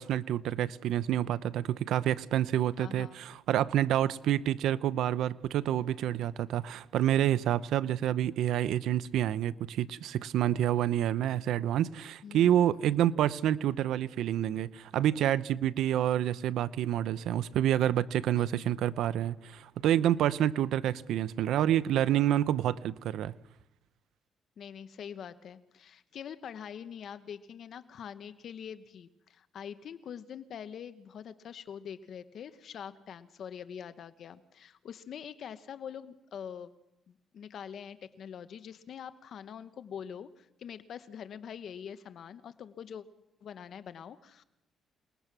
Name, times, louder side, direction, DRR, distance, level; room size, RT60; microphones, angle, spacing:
voice 1, 0.0-23.3, right 11 dB, 80° right, 0.7 m, -28 dB
voice 2, 2.8-3.2 12.2-13.0 18.3-18.5 24.6-36.7 37.1-43.0 43.4-44.4, left 8 dB, 65° left, 1.0 m, -44 dB
28.5 x 20.0 x 6.1 m
cardioid pair, 90°, 0 cm